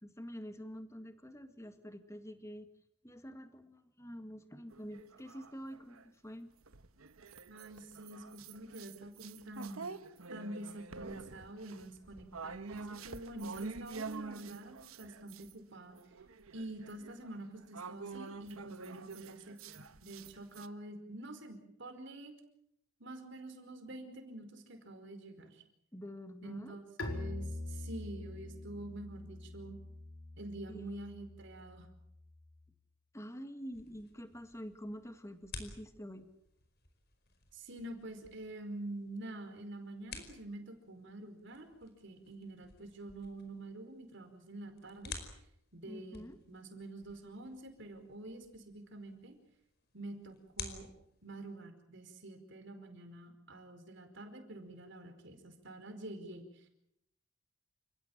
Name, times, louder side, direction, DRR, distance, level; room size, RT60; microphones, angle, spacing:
voice 1, 0.0-2.7 3.0-6.5 25.9-26.7 30.7-31.0 33.1-36.3 45.8-46.4, equal, 15° left, 8 dB, 2.0 m, -47 dB
sound 1, 4.7-6.1 6.6-15.5 15.9-20.7, right 4 dB, 80° right, 1.2 m, -47 dB
voice 2, 7.5-9.9 10.3-16.0 16.5-22.3 23.0-25.6 26.4-29.8 30.4-31.9 37.5-45.1 45.7-49.3 49.9-50.9 51.2-56.7, right 2 dB, 55° right, 6 dB, 4.9 m, -47 dB
Bowed string instrument, 27.0-32.6, left 2 dB, 65° left, 4.9 m, -44 dB
sound 2, 33.7-51.6, left 5 dB, 50° left, 4.8 m, -53 dB
29.5 x 16.5 x 9.0 m, 0.78 s
head